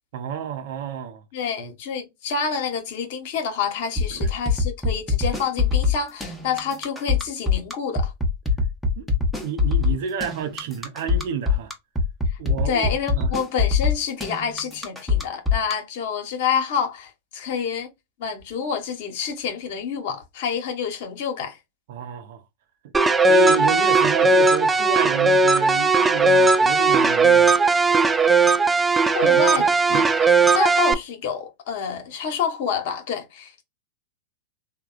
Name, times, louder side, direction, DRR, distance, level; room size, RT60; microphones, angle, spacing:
voice 1, 0.1-1.2 4.1-4.3 9.0-9.1 9.4-11.7 12.4-13.3 21.9-22.4 22.8-22.9 23.3-27.5 29.2-29.6 29.9-30.1, right 7 dB, 60° right, 0.6 m, -30 dB
voice 2, 1.3-8.1 12.6-17.9 18.2-21.6 29.1-30.3 30.5-33.6, left 6 dB, 60° left, 1.1 m, -28 dB
sound 1, 4.0-15.7, left 5 dB, ahead, 1.0 m, -22 dB
sound 2, 22.9-30.9, right 3 dB, 15° right, 0.3 m, -17 dB
3.4 x 2.2 x 2.3 m
hypercardioid pair, 105°, 0 cm